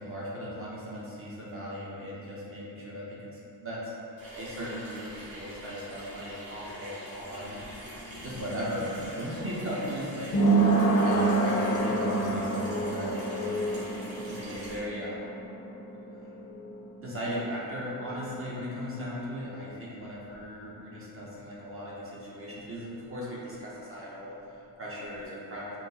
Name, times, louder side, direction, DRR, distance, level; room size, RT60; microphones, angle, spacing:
voice 1, 0.0-3.9 4.3-7.6 8.2-10.5 11.0-15.4 17.0-25.8, equal, 30° right, -6 dB, 0.7 m, -37 dB
Water tap faucet / Sink (filling or washing), 4.2-14.8, right 1 dB, 55° right, 1.3 m, -45 dB
sound 1, 7.3-18.8 19.0-19.1, right 3 dB, 35° left, 0.5 m, -29 dB
4.5 x 2.0 x 2.6 m, 2.7 s
cardioid pair, 130°, 43 cm